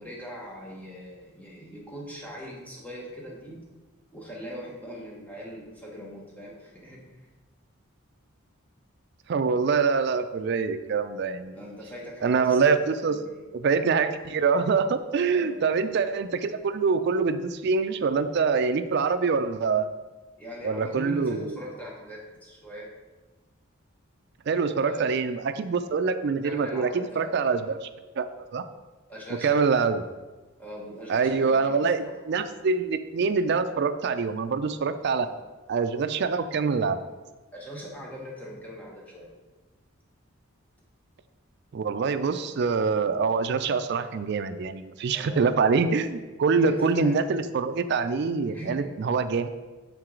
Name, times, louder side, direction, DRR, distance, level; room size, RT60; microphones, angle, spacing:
voice 1, 0.0-3.7 4.1-7.2 11.5-12.7 13.1-13.4 15.3-15.7 20.4-22.9 24.8-25.1 26.4-27.5 29.1-29.8 30.6-32.1 37.5-39.3 45.1-45.4 46.6-47.2 48.4-49.0, equal, 5° left, -3 dB, 1.0 m, -40 dB
voice 2, 9.3-11.6 12.2-13.2 13.5-19.9 20.6-21.6 24.5-27.9 28.2-28.3 28.5-28.6 29.4-30.0 31.1-35.3 35.7-37.0 41.7-49.5, right 5 dB, 50° right, 10 dB, 0.3 m, -25 dB
6.6 x 4.6 x 3.7 m, 1.2 s
head